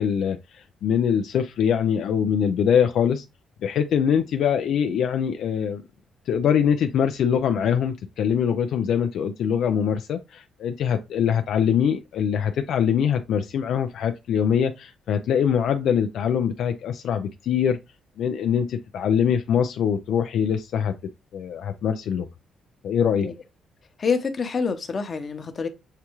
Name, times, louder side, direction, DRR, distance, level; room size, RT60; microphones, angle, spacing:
voice 1, 0.0-3.2 3.6-5.8 6.3-17.8 18.2-20.9 21.3-22.3 22.8-23.3, left 8 dB, 75° left, 0.4 m, -23 dB
voice 2, 24.0-25.7, left 5 dB, 40° left, 0.9 m, -26 dB
6.6 x 2.3 x 3.0 m
cardioid pair, 90°, 0 cm